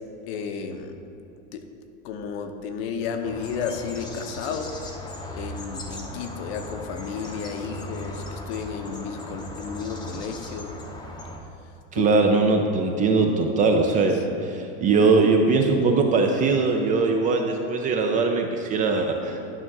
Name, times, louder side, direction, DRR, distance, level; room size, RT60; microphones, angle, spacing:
voice 1, 0.3-0.9 1.5-1.6 2.0-4.7 5.4-10.8 11.9-12.1, left 6 dB, 60° left, 6 dB, 0.8 m, -32 dB
sound 1, 3.2-11.4, left 1 dB, 10° left, 0.7 m, -38 dB
voice 2, 11.9-19.4, right 3 dB, 20° right, 3 dB, 0.4 m, -21 dB
11.0 x 3.6 x 6.0 m, 2.7 s
supercardioid pair, 145°, 36 cm